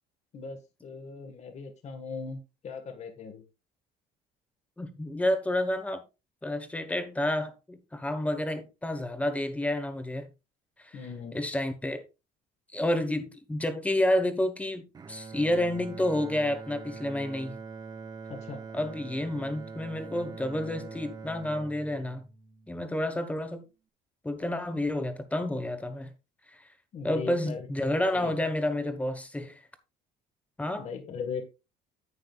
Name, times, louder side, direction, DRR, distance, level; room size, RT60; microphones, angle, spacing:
voice 1, 0.3-3.4 10.9-11.4 18.3-18.6 26.9-28.3 30.8-31.4, left 5 dB, 40° left, 1.7 m, -39 dB
voice 2, 4.8-6.0 6.4-10.3 10.8-11.0 11.3-12.0 12.7-14.8 15.1-17.6 18.7-22.2 22.7-23.6 24.2-26.1 27.0-29.6 30.6-30.9, left 1 dB, 10° left, 1.3 m, -30 dB
Bowed string instrument, 14.9-23.2, right 4 dB, 25° right, 0.9 m, -43 dB
9.9 x 9.0 x 2.4 m
cardioid pair, 150°, 17 cm